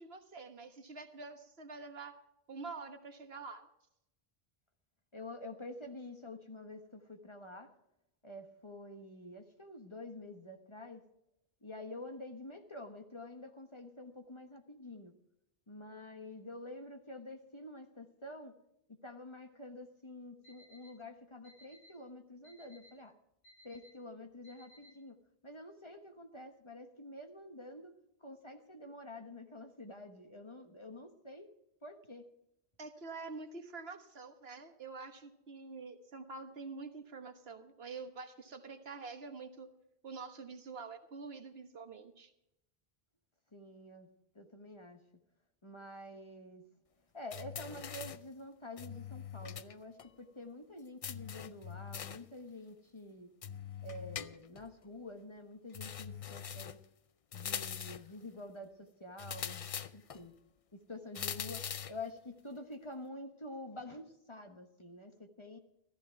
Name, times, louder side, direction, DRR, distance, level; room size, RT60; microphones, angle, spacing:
voice 1, 0.0-2.1 2.5-3.7 32.8-39.7 40.0-42.3, right 4 dB, 75° right, 7 dB, 1.6 m, -47 dB
voice 2, 5.1-7.7 8.2-11.0 11.6-15.2 15.7-18.5 19.0-23.2 23.6-25.2 25.4-31.5 31.8-32.3 43.5-44.1 44.3-45.0 45.6-46.6 47.1-53.3 53.8-56.8 57.3-60.4 60.7-65.6, left 1 dB, 30° left, 6 dB, 1.3 m, -48 dB
Alarm, 20.4-20.9 21.4-21.9 22.4-22.9 23.4-23.9 24.4-24.9, equal, 85° left, 8.0 m, -60 dB
sound 1, 47.3-48.3 48.8-49.7 50.0-50.1 51.0-52.3 53.4-54.7 55.7-56.9 57.3-58.1 59.2-60.2 61.1-62.0, left 8 dB, 45° left, 0.5 m, -42 dB
14.5 x 14.0 x 4.7 m, 0.82 s
omnidirectional pair, 1.0 m